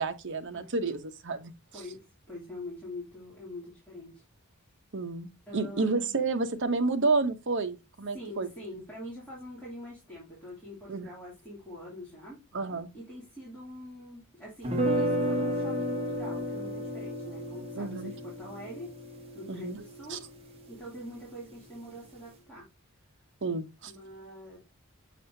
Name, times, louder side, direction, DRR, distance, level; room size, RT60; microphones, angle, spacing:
voice 1, 0.0-1.5 4.9-8.5 10.9-11.1 12.5-12.9 17.7-18.1 19.5-19.8 20.1-20.2 23.4-23.9, right 3 dB, 55° right, 0.8 m, -30 dB
voice 2, 1.7-4.2 5.5-5.9 8.1-12.4 12.9-18.9 19.3-20.2 20.7-22.7 23.9-24.6, left 1 dB, 5° left, 2.6 m, -44 dB
sound 1, 14.6-20.6, equal, 25° right, 1.3 m, -32 dB
6.5 x 6.3 x 2.7 m
head